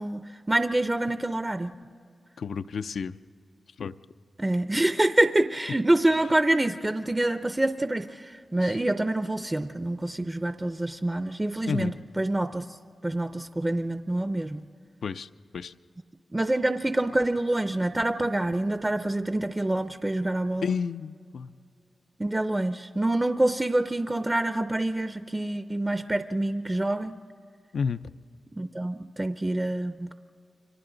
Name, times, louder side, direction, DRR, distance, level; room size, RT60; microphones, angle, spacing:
voice 1, 0.0-1.7 4.4-12.6 13.0-14.6 16.3-20.7 22.2-27.2 28.5-30.1, right 1 dB, 20° right, 9 dB, 0.5 m, -26 dB
voice 2, 2.4-3.1 3.8-4.0 8.6-8.8 11.7-12.0 15.0-15.7 20.6-21.5 27.7-28.0, left 6 dB, 80° left, 11 dB, 0.5 m, -31 dB
30.0 x 24.0 x 3.9 m, 2.3 s
wide cardioid pair, 85°, 0 cm